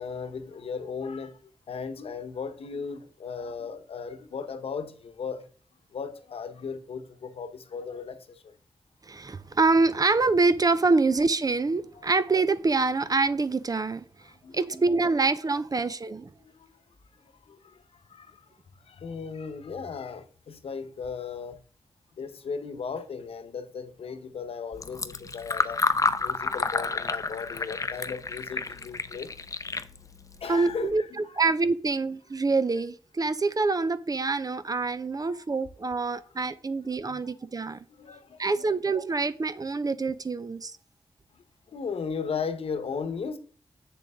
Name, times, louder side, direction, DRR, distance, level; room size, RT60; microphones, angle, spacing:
voice 1, 0.0-5.5 5.9-8.6 11.9-12.1 14.3-15.0 16.4-16.8 17.1-21.6 22.2-29.4 30.4-31.4 35.2-35.4 36.1-36.3 37.1-37.3 37.9-38.7 41.3-43.4, left 5 dB, 80° left, 1.0 m, -37 dB
voice 2, 9.1-14.0 14.5-16.3 30.5-31.0 31.4-37.8 38.4-40.7, right 3 dB, 40° right, 0.6 m, -25 dB
Fill (with liquid), 24.7-30.9, left 3 dB, 35° left, 0.6 m, -30 dB
7.8 x 6.8 x 3.6 m
cardioid pair, 60°, 10 cm